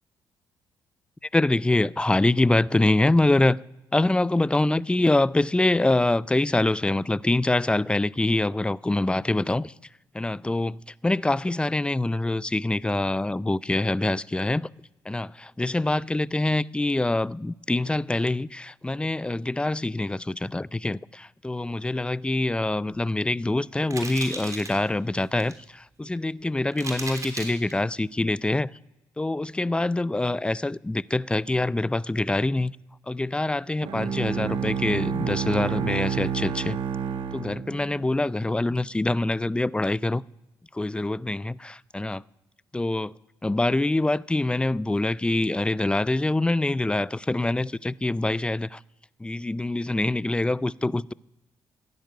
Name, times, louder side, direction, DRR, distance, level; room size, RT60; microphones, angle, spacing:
voice 1, 1.3-3.6 3.9-9.7 10.1-14.7 15.1-28.7 29.2-32.8 33.1-36.8 37.3-40.2 40.7-42.2 42.7-43.1 43.4-48.8 49.2-51.1, left 2 dB, 10° left, 0.4 m, -25 dB
sound 1, 23.9-24.8 25.2-25.6 26.2-26.3 26.7-27.7, right 3 dB, 35° right, 3.4 m, -35 dB
Bowed string instrument, 33.8-38.2, right 7 dB, 70° right, 1.1 m, -29 dB
14.5 x 10.5 x 6.8 m
hypercardioid pair, 50°, 9 cm